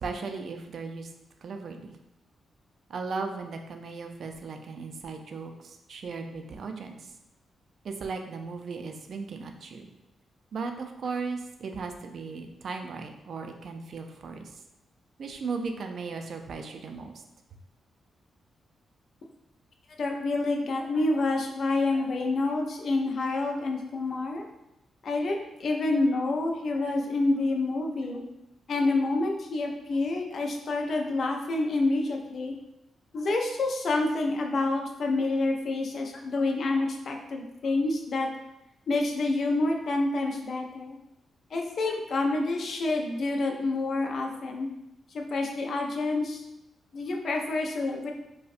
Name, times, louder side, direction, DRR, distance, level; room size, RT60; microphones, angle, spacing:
voice 1, 0.0-1.1 1.4-2.0 2.9-7.1 7.8-9.9 10.5-14.5 15.2-17.2, right 4 dB, 50° right, 5 dB, 0.4 m, -36 dB
voice 2, 20.0-24.4 25.0-28.2 28.7-32.5 33.1-38.3 38.9-41.0 41.5-44.7 45.1-46.4 46.9-48.1, left 2 dB, 45° left, 1 dB, 0.4 m, -28 dB
5.0 x 2.1 x 2.4 m, 0.89 s
wide cardioid pair, 170°, 0 cm